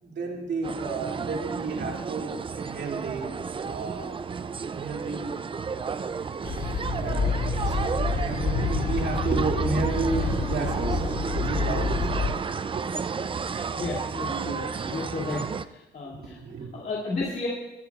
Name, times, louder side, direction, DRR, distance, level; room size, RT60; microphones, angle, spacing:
voice 1, 0.0-3.3 3.7-4.1 4.7-5.4 7.0-7.4 7.6-11.0 11.3-12.8 16.1-16.9, right 4 dB, 60° right, -1 dB, 2.6 m, -32 dB
sound 1, 0.6-15.6, right 5 dB, 25° right, 0.4 m, -32 dB
sound 2, 6.4-12.3, left 3 dB, 65° left, 4.1 m, -28 dB
voice 2, 13.8-15.4 15.7-16.4 16.7-17.5, left 3 dB, 45° left, -5 dB, 2.6 m, -33 dB
23.5 x 8.6 x 2.4 m, 0.99 s
cardioid pair, 90°, 20 cm